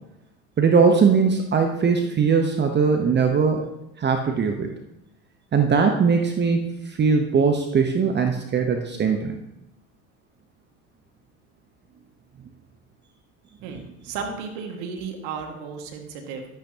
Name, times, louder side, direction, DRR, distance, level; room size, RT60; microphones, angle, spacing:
voice 1, 0.6-3.6 4.0-4.7 5.5-9.3, right 5 dB, 30° right, 4 dB, 0.9 m, -20 dB
voice 2, 13.6-16.5, right 5 dB, 70° right, 3 dB, 1.9 m, -34 dB
12.0 x 8.2 x 2.8 m, 0.89 s
hypercardioid pair, 85°, 36 cm